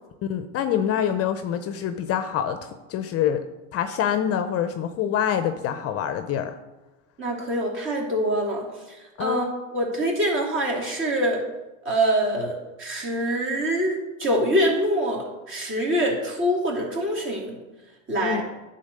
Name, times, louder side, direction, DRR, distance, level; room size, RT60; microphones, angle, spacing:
voice 1, 0.3-3.4 3.7-6.6 9.2-9.5 18.2-18.4, left 9 dB, 40° left, 9 dB, 0.6 m, -26 dB
voice 2, 7.2-8.6 9.2-9.5 9.7-11.4 11.8-12.5 12.8-13.9 14.2-17.5 18.1-18.4, right 1 dB, 30° right, -1 dB, 2.8 m, -24 dB
9.9 x 4.0 x 6.6 m, 1.1 s
supercardioid pair, 120°, 38 cm